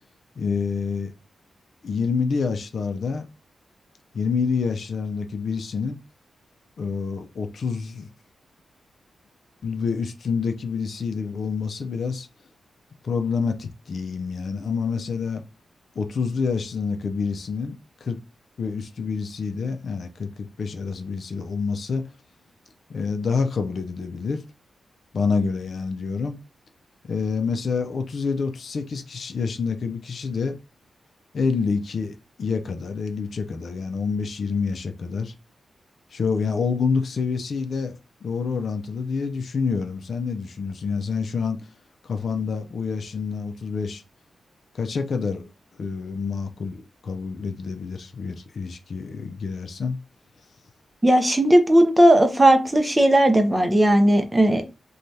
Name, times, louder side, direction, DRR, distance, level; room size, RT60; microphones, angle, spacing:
voice 1, 0.4-1.1 1.8-3.3 4.1-6.0 6.8-8.1 9.6-12.3 13.0-15.4 16.0-18.2 18.6-22.1 22.9-24.4 25.1-26.4 27.0-30.6 31.3-35.3 36.1-41.6 42.0-44.0 44.7-45.5 45.8-50.0, left 5 dB, 60° left, 0.4 m, -27 dB
voice 2, 51.0-54.7, right 1 dB, 15° right, 0.5 m, -17 dB
3.1 x 2.2 x 2.7 m
wide cardioid pair, 110°, 0 cm